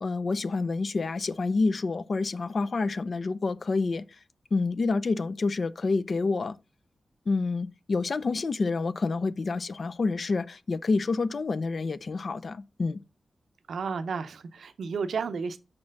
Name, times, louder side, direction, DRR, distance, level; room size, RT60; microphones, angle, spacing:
voice 1, 0.0-4.0 4.5-6.6 7.3-13.0, left 3 dB, 55° left, 0.4 m, -28 dB
voice 2, 13.7-15.6, right 5 dB, 90° right, 0.6 m, -32 dB
5.9 x 4.3 x 6.3 m
wide cardioid pair, 90°, 0 cm